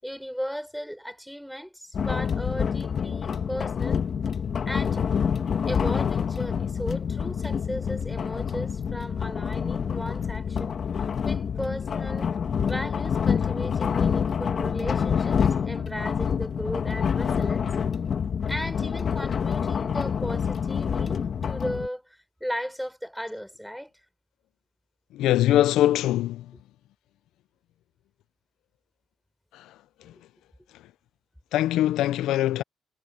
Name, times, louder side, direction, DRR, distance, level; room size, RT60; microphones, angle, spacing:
voice 1, 0.0-4.1 4.7-5.2 5.6-12.3 12.7-17.7 18.5-23.9, equal, ahead, 6.1 m, -36 dB
sound 1, 1.9-21.9, left 7 dB, 50° left, 2.1 m, -27 dB
voice 2, 25.2-26.4 31.5-32.6, left 13 dB, 90° left, 0.4 m, -22 dB
cardioid pair, 90°, 0 cm